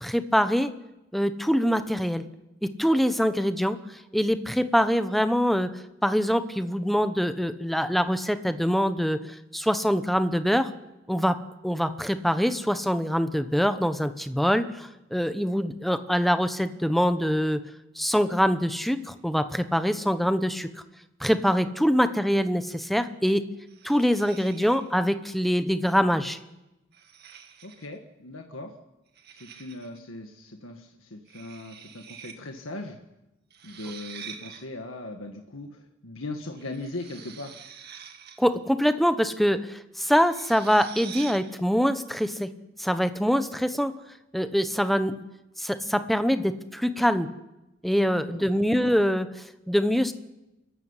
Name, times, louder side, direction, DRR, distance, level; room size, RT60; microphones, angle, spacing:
voice 1, 0.0-0.7 1.1-2.2 2.6-3.8 4.1-5.7 6.0-9.2 9.5-10.7 11.1-11.4 11.6-17.6 18.0-20.7 21.2-23.5 23.8-26.4 38.4-42.5 42.8-44.0 44.3-45.2 45.6-47.3 47.8-49.3 49.7-50.1, equal, ahead, 10 dB, 1.0 m, -24 dB
sound 1, 23.7-25.0 26.1-26.4 26.9-28.0 29.2-30.0 31.3-32.4 32.6-32.7 33.5-34.6 36.6-38.5 40.0-41.5, right 8 dB, 55° right, 2.0 m, -45 dB
voice 2, 27.6-28.8 29.3-33.0 33.6-37.6 48.0-48.5, left 2 dB, 90° left, 3 dB, 1.8 m, -39 dB
26.0 x 15.0 x 9.9 m, 0.96 s
head